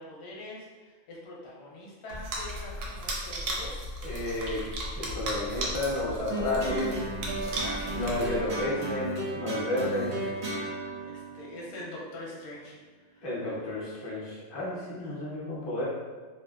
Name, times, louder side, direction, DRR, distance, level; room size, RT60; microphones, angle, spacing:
voice 1, 0.0-3.7 4.2-4.3 7.2-8.7 9.8-10.1 10.4-13.3 15.0-15.3, left 1 dB, 65° left, -4 dB, 0.8 m, -44 dB
sound 1, 2.1-8.7, right 1 dB, 80° right, 0.9 m, -36 dB
voice 2, 4.0-4.6 4.9-7.0 7.9-10.1 13.2-15.9, left 1 dB, 35° left, -7 dB, 0.4 m, -31 dB
sound 2, 6.3-12.8, right 2 dB, 45° right, 0.5 m, -35 dB
2.7 x 2.1 x 2.3 m, 1.4 s
omnidirectional pair, 1.3 m